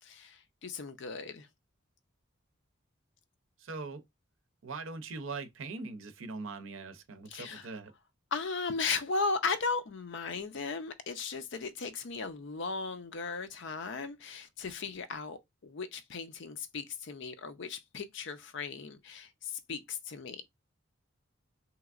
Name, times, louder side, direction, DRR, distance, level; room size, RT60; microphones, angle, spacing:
voice 1, 0.0-1.5 7.3-7.7 8.3-20.4, left 4 dB, 60° left, 0.5 m, -36 dB
voice 2, 3.6-4.0 4.6-7.9, right 3 dB, 70° right, 0.5 m, -41 dB
3.4 x 2.9 x 2.4 m
head